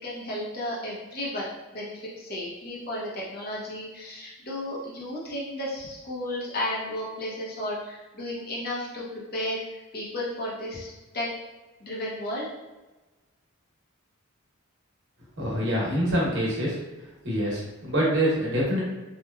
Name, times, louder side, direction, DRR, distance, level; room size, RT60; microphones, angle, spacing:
voice 1, 0.0-11.3 11.8-12.5, left 1 dB, 45° left, -6 dB, 0.7 m, -33 dB
voice 2, 15.4-16.8 17.2-18.8, equal, 55° right, -5 dB, 0.9 m, -25 dB
3.0 x 2.2 x 2.3 m, 1.1 s
head